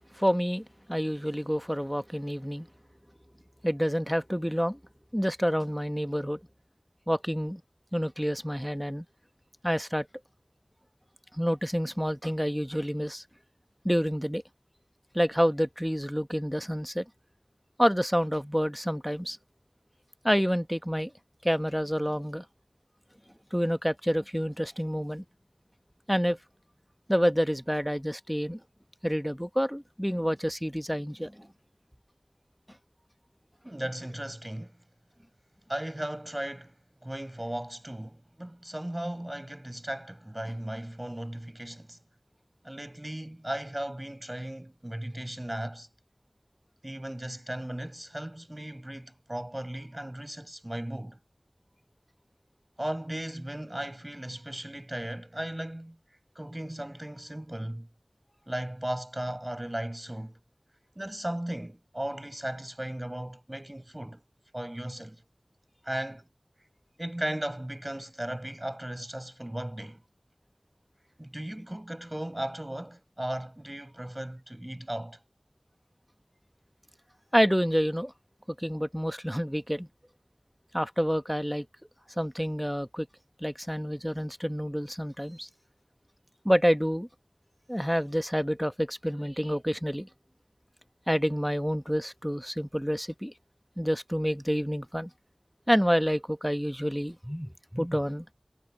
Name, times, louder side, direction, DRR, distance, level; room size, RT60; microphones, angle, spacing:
voice 1, 0.1-2.7 3.6-4.8 5.1-6.4 7.1-7.6 7.9-9.0 9.6-10.1 11.3-13.2 13.8-14.4 15.1-17.0 17.8-19.4 20.2-21.1 21.4-22.4 23.5-25.2 26.1-26.4 27.1-28.6 29.0-31.5 77.3-78.1 78.6-79.9 80.7-81.7 82.2-83.1 83.4-85.5 86.4-87.1 87.7-90.1 91.1-93.3 93.8-95.1 95.7-98.3, equal, ahead, 1.2 m, -28 dB
voice 2, 33.6-34.8 35.7-42.0 42.6-45.9 46.8-51.2 52.8-57.9 58.5-60.4 61.0-64.2 64.5-65.2 65.8-66.2 67.0-70.0 71.2-75.2, right 1 dB, 25° right, 5.3 m, -36 dB
wide cardioid pair, 45°, 0 cm